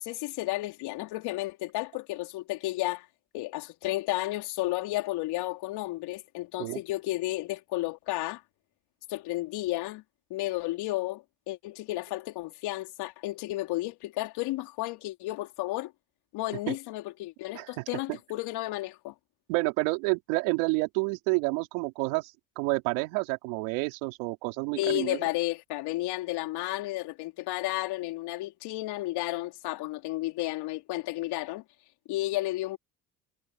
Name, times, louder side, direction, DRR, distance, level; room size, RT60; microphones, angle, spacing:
voice 1, 0.0-3.1 3.3-8.4 9.1-10.0 10.3-15.9 16.3-19.1 24.8-31.6 32.1-32.8, left 18 dB, 75° left, 3.6 m, -32 dB
voice 2, 17.5-18.2 19.5-25.3, right 27 dB, 85° right, 3.9 m, -29 dB
supercardioid pair, 70°, 40 cm